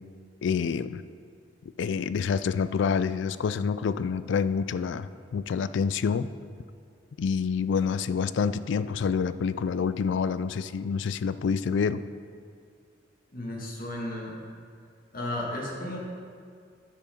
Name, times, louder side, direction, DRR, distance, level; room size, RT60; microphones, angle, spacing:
voice 1, 0.4-1.0 1.8-6.3 7.2-12.0, left 6 dB, 65° left, 14 dB, 0.3 m, -27 dB
voice 2, 13.3-14.4 15.1-16.0, left 1 dB, 45° left, -3 dB, 1.8 m, -34 dB
9.8 x 6.9 x 5.1 m, 2.2 s
head